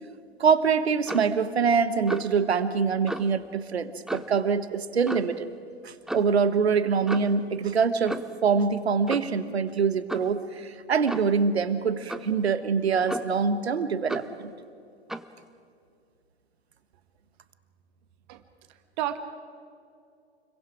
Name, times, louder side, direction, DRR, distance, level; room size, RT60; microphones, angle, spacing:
voice 1, 0.4-5.5 5.8-14.5, right 5 dB, 70° right, 12 dB, 1.4 m, -25 dB
Clock, 1.1-1.4 2.1-2.4 3.1-3.3 4.1-4.4 5.1-5.4 6.1-6.3 7.1-7.4 8.1-8.4 9.1-9.4 10.1-10.4 11.1-11.4 12.1-12.4 13.1-13.5 14.1-14.4 15.1-15.3, right 1 dB, ahead, 0.5 m, -35 dB
voice 2, 18.7-19.2, right 13 dB, 45° right, 9 dB, 1.5 m, -32 dB
29.5 x 23.0 x 5.0 m, 2.4 s
figure-of-eight pair, 95°, 33 cm